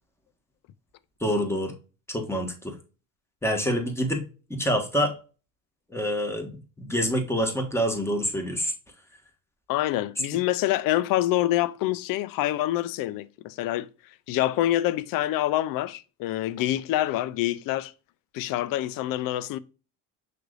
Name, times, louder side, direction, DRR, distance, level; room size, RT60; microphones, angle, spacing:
voice 1, 1.2-1.7 2.1-2.7 3.4-4.2 4.5-5.1 5.9-8.7, equal, 5° left, 1.5 m, -26 dB
voice 2, 9.7-13.9 14.3-17.9 18.3-19.6, left 14 dB, 55° left, 0.5 m, -26 dB
5.9 x 3.4 x 2.5 m
supercardioid pair, 80°, 41 cm